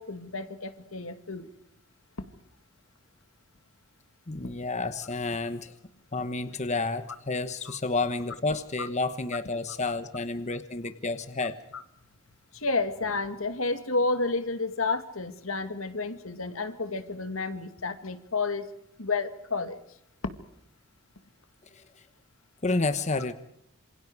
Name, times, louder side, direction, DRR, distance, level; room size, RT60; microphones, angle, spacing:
voice 1, 0.0-1.5 8.8-8.9 12.5-18.6 19.0-19.8 20.2-20.3, left 3 dB, 75° left, 9 dB, 2.1 m, -30 dB
voice 2, 4.3-5.7 6.1-11.6 21.7-22.1 22.6-23.3, left 3 dB, 35° left, 11 dB, 1.1 m, -30 dB
27.5 x 26.5 x 4.8 m, 0.78 s
head